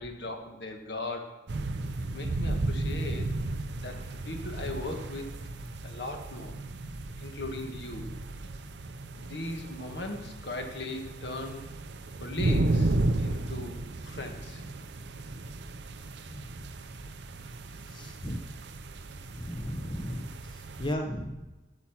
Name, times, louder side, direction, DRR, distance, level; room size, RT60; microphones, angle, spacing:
voice 1, 0.0-1.4 2.1-3.4 3.8-5.3 5.8-6.6 7.2-8.1 9.2-11.7 12.2-14.6, left 2 dB, 65° left, 3 dB, 1.5 m, -38 dB
sound 1, 1.5-20.9, right 2 dB, 70° right, 0.6 m, -34 dB
voice 2, 17.9-18.4 19.3-20.3 20.5-21.4, equal, 25° left, 3 dB, 0.7 m, -35 dB
8.5 x 7.3 x 5.9 m, 1.1 s
head